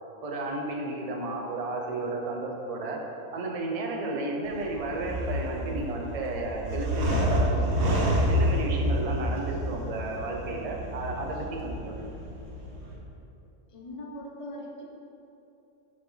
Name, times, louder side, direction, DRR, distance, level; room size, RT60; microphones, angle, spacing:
voice 1, 0.2-3.0 3.3-7.9 8.3-12.1, right 2 dB, 35° right, 0 dB, 0.7 m, -33 dB
sound 1, 4.4-13.0, equal, 50° right, 1.1 m, -29 dB
voice 2, 13.7-14.8, left 1 dB, 30° left, -1 dB, 0.7 m, -40 dB
5.8 x 5.1 x 5.7 m, 2.9 s
omnidirectional pair, 1.5 m